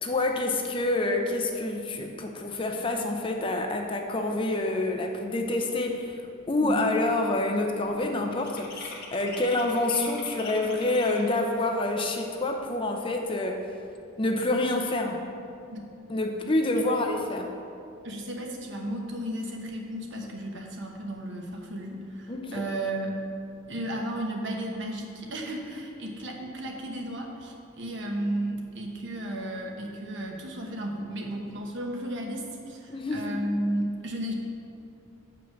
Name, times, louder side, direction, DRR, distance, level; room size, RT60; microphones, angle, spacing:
voice 1, 0.0-6.2 6.5-13.6 14.2-15.3 16.1-17.5 22.3-22.6 32.9-33.4, left 2 dB, 25° left, 3 dB, 0.6 m, -27 dB
sound 1, 6.3-6.6 6.9-11.5, left 3 dB, 50° left, 1.1 m, -43 dB
voice 2, 18.0-23.2 23.7-34.3, right 1 dB, 60° right, 1 dB, 1.1 m, -34 dB
7.7 x 5.2 x 5.8 m, 2.6 s
head